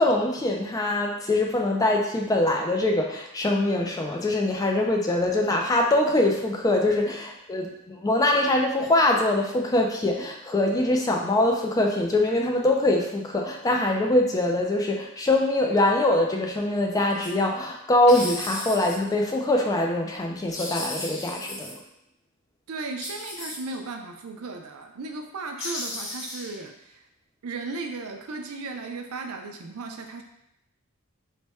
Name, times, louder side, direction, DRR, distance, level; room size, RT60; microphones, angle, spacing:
voice 1, 0.0-21.8, left 1 dB, 15° left, 1 dB, 0.3 m, -23 dB
sound 1, 17.1-17.3 18.1-18.9 20.5-21.7 23.0-23.8 25.6-26.6, left 1 dB, 45° left, 1.2 m, -35 dB
voice 2, 22.7-27.0 27.4-30.2, right 3 dB, 80° right, 4 dB, 0.5 m, -36 dB
3.3 x 2.1 x 4.1 m, 0.81 s
head